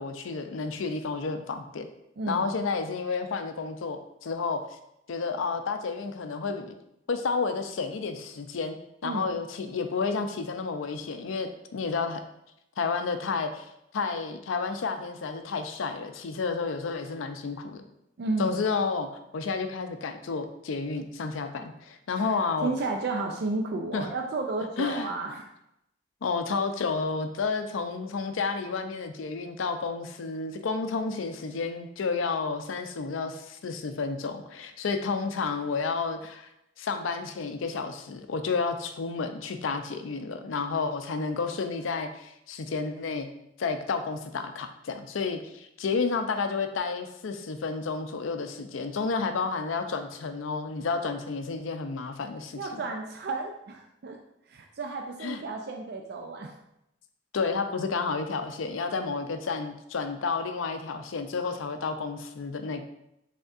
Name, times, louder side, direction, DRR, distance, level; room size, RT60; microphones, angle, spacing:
voice 1, 0.0-1.9 2.3-4.6 5.1-6.7 7.1-8.8 9.0-12.2 12.8-13.7 13.9-17.8 18.4-19.1 19.3-22.7 23.9-24.1 24.8-25.1 26.2-36.5 36.8-43.3 43.6-52.8 55.2-55.4 57.3-62.8, left 4 dB, 85° left, 7 dB, 0.5 m, -31 dB
voice 2, 18.2-18.5 22.6-25.5 52.5-54.2 54.5-56.5, right 3 dB, 55° right, 2 dB, 0.4 m, -32 dB
5.2 x 3.5 x 2.4 m, 0.82 s
head